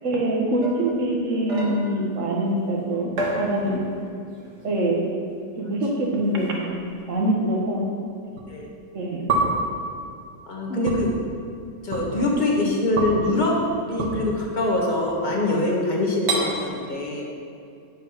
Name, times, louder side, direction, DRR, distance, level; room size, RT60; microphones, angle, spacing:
voice 1, 0.0-3.8 4.6-5.1 5.6-6.7 7.1-7.9 8.9-9.2 10.7-10.9, right 1 dB, 50° right, -1 dB, 1.7 m, -24 dB
sound 1, 0.6-2.1 3.2-4.1 4.4-4.8 5.7-5.8 6.7-6.8 8.4-8.5 9.3-9.8 10.8-11.0 11.9-12.1 13.0-13.2 14.0-14.1 15.1-15.5 16.3-16.4, right 2 dB, 80° right, 2.0 m, -28 dB
voice 2, 10.5-11.1 11.8-17.3, left 2 dB, 30° left, -3 dB, 1.5 m, -24 dB
9.7 x 5.7 x 5.8 m, 2.4 s
omnidirectional pair, 1.8 m